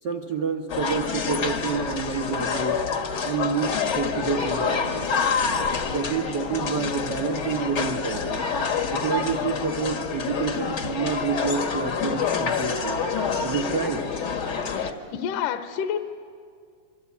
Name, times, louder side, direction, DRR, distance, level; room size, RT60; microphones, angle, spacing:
voice 1, 0.0-2.8 3.2-5.1 5.9-8.4 8.9-13.0 13.4-14.1, right 5 dB, 75° right, 3 dB, 0.9 m, -28 dB
sound 1, 0.7-14.9, left 5 dB, 60° left, 1.1 m, -27 dB
voice 2, 14.6-16.0, left 8 dB, 75° left, 8 dB, 2.3 m, -29 dB
26.5 x 25.0 x 8.5 m, 2.2 s
omnidirectional pair, 4.1 m